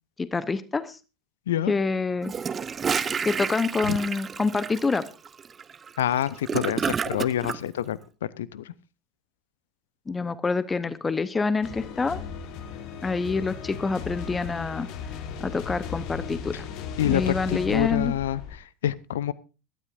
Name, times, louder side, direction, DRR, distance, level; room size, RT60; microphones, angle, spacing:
voice 1, 0.2-1.0 1.7-2.3 3.2-5.0 10.1-12.2 13.0-14.9 15.4-16.6 17.0-18.1, left 4 dB, 20° left, 15 dB, 0.9 m, -26 dB
Gurgling / Toilet flush, 2.2-7.6, right 6 dB, 25° right, 0.7 m, -30 dB
voice 2, 6.0-8.7 17.0-19.3, left 11 dB, 70° left, 20 dB, 0.6 m, -27 dB
sound 1, 11.6-18.6, left 6 dB, 55° left, 1.6 m, -36 dB
22.5 x 12.5 x 2.6 m, 0.31 s
figure-of-eight pair, 75°, 0 cm